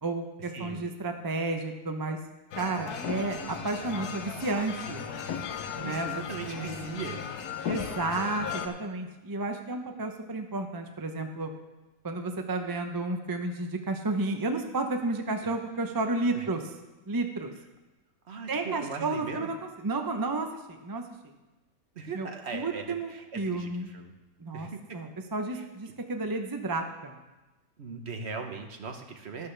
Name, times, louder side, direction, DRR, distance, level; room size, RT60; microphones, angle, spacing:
voice 1, 0.0-2.2 2.6-5.0 5.8-6.9 7.7-11.5 12.0-16.7 17.1-17.5 18.5-21.3 22.1-23.9 24.4-24.7 24.9-27.2, right 3 dB, 25° right, 4 dB, 0.5 m, -32 dB
sound 1, 2.5-8.7, left 7 dB, 90° left, 1.3 m, -36 dB
voice 2, 5.7-7.2 16.3-16.5 18.3-19.5 22.0-24.1 24.5-24.8 25.5-25.6 27.8-29.5, right 5 dB, 50° right, 4 dB, 1.1 m, -39 dB
12.5 x 12.0 x 3.3 m, 1.1 s
omnidirectional pair, 1.6 m